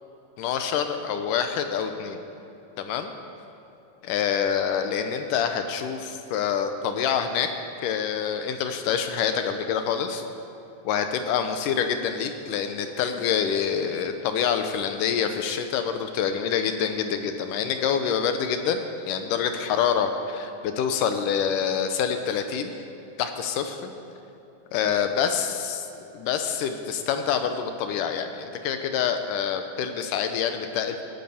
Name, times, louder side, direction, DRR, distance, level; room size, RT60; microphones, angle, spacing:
voice 1, 0.4-2.2 2.8-3.1 4.0-7.5 7.8-10.2 10.9-22.7 23.2-23.9 24.7-25.9 26.1-31.0, left 7 dB, 75° left, 7 dB, 2.1 m, -26 dB
18.0 x 9.6 x 7.0 m, 3.0 s
omnidirectional pair, 4.2 m